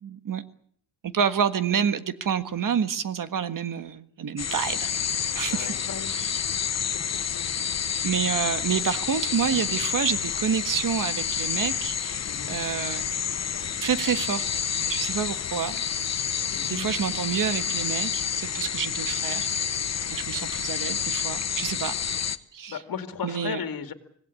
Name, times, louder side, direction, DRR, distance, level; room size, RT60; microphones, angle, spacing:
voice 1, 0.0-0.4 1.0-5.7 6.1-6.4 8.0-13.1 13.8-14.6 14.9-15.8 16.7-19.5 20.1-22.0 22.5-22.8 23.2-23.6, right 7 dB, 55° right, 11 dB, 1.7 m, -28 dB
sound 1, 4.4-22.4, left 7 dB, 40° left, 1.1 m, -29 dB
voice 2, 5.2-6.5 7.3-7.5 8.3-8.4 12.3-12.6 16.5-16.9 22.7-23.9, left 7 dB, 65° left, 8 dB, 2.4 m, -36 dB
25.5 x 19.0 x 8.5 m, 0.62 s
wide cardioid pair, 135°, 38 cm